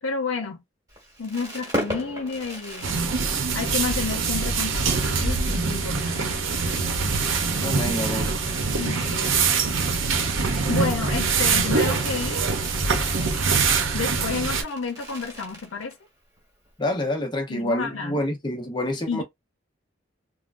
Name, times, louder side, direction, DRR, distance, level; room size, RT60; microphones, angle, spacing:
voice 1, 0.0-0.6 1.2-3.0 3.5-6.3 8.7-9.5 10.7-12.4 13.5-15.9 17.5-18.2 19.1-19.2, left 4 dB, 85° left, 0.7 m, -30 dB
Fireworks, 0.9-16.1 16.4-16.5 16.7-16.9, equal, 20° right, 1.4 m, -38 dB
sound 1, 2.8-14.6, right 4 dB, 75° right, 0.7 m, -24 dB
voice 2, 7.6-8.3 16.8-19.2, left 1 dB, 20° left, 0.7 m, -27 dB
3.6 x 2.1 x 2.5 m
head